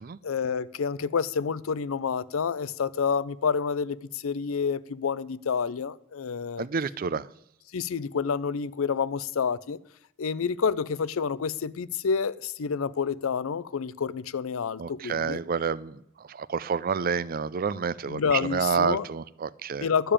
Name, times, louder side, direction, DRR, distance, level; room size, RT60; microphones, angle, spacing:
voice 1, 0.2-6.7 7.7-9.8 10.2-15.4 18.1-19.1 19.8-20.1, left 6 dB, 75° left, 0.5 m, -28 dB
voice 2, 6.6-7.3 14.8-16.0 16.3-19.9, right 6 dB, 45° right, 0.4 m, -29 dB
12.0 x 6.8 x 8.7 m
head